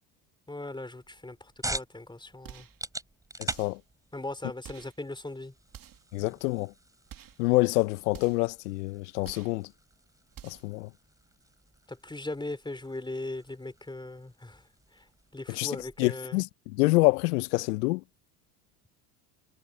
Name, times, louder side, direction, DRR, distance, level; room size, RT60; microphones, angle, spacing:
voice 1, 0.5-2.7 4.1-5.5 11.9-15.1 15.3-16.4, left 2 dB, 10° left, 3.8 m, -39 dB
sound 1, 1.0-16.1, right 2 dB, 5° right, 4.5 m, -44 dB
sound 2, 2.4-2.8 3.5-3.9 4.6-5.0 5.7-6.1 7.1-7.4 8.1-8.5 9.2-9.6 10.3-10.7, right 10 dB, 45° right, 3.3 m, -49 dB
voice 2, 3.4-3.8 6.1-6.7 7.4-9.7 10.4-10.9 15.5-18.0, left 23 dB, 75° left, 1.1 m, -27 dB
hypercardioid pair, 70°, 47 cm